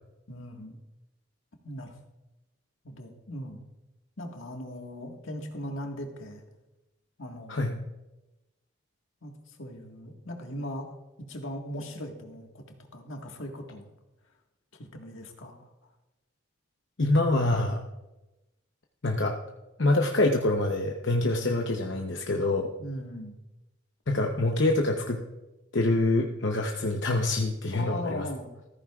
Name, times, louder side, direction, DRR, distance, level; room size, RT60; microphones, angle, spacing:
voice 1, 0.3-0.8 1.6-2.0 2.8-3.6 4.2-6.4 7.2-7.8 9.2-10.9 11.3-12.6 12.9-13.9 14.7-15.7 22.8-23.3 27.7-28.5, equal, 80° left, 2 dB, 1.7 m, -39 dB
voice 2, 17.0-17.8 19.0-19.4 19.8-22.7 24.1-25.2 25.7-28.3, left 2 dB, 65° left, 1 dB, 0.8 m, -25 dB
14.5 x 14.0 x 2.4 m, 1.0 s
head